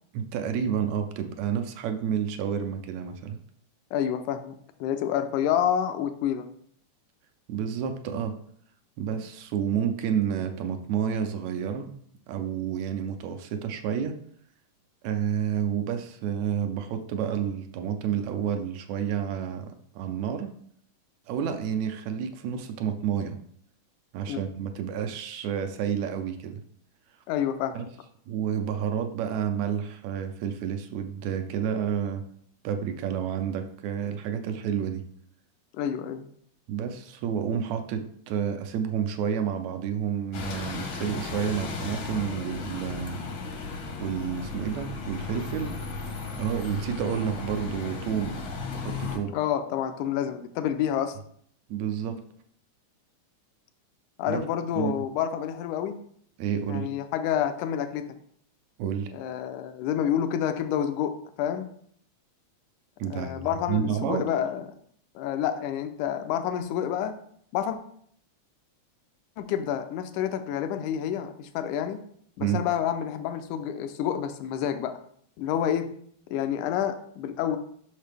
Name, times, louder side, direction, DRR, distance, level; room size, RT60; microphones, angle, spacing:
voice 1, 0.1-3.4 7.5-8.4 9.0-12.0 12.3-14.2 15.0-20.5 21.3-23.4 24.1-26.6 27.7-27.9 28.3-32.3 32.6-35.1 36.7-43.2 44.0-45.8 46.4-48.4 48.7-49.4 51.7-52.2 54.3-54.4 54.8-55.0 56.4-56.9 58.8-59.1 63.0-64.2 72.4-72.6, right 8 dB, 75° right, 6 dB, 1.8 m, -30 dB
voice 2, 3.9-6.5 24.3-24.4 27.3-27.8 35.7-36.3 49.3-51.2 54.2-56.0 56.7-58.1 59.1-61.7 63.1-64.7 65.2-67.1 67.5-67.8 69.4-72.0 72.4-75.0 75.4-75.9 76.3-77.6, left 9 dB, 85° left, 8 dB, 2.1 m, -28 dB
Bus, 40.3-49.2, left 4 dB, 60° left, 1.3 m, -35 dB
6.5 x 5.9 x 3.4 m, 0.64 s
omnidirectional pair, 3.5 m